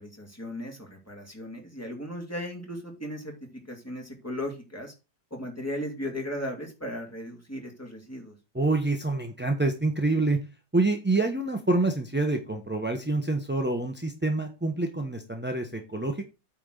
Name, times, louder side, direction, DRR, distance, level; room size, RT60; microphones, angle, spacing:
voice 1, 0.0-4.9 5.3-8.4, left 1 dB, 10° left, 1 dB, 2.5 m, -36 dB
voice 2, 8.5-10.4 10.7-16.3, right 2 dB, 10° right, 4 dB, 0.5 m, -27 dB
8.9 x 4.3 x 6.5 m, 0.29 s
omnidirectional pair, 2.0 m